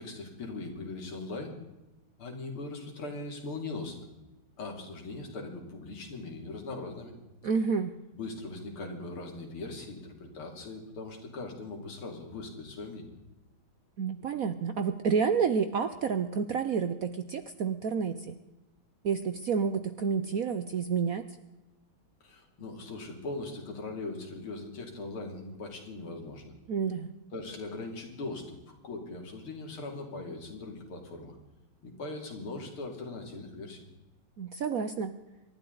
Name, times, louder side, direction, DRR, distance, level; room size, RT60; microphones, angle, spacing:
voice 1, 0.0-1.6 2.2-4.1 4.6-7.1 8.1-13.2 22.2-26.5 27.3-31.4 31.8-33.8, left 3 dB, 85° left, 2 dB, 3.6 m, -40 dB
voice 2, 7.4-8.0 14.0-18.4 19.0-21.3 26.7-27.1 34.4-35.2, right 6 dB, 65° right, 10 dB, 0.9 m, -29 dB
27.5 x 12.0 x 3.9 m, 1.0 s
omnidirectional pair, 2.3 m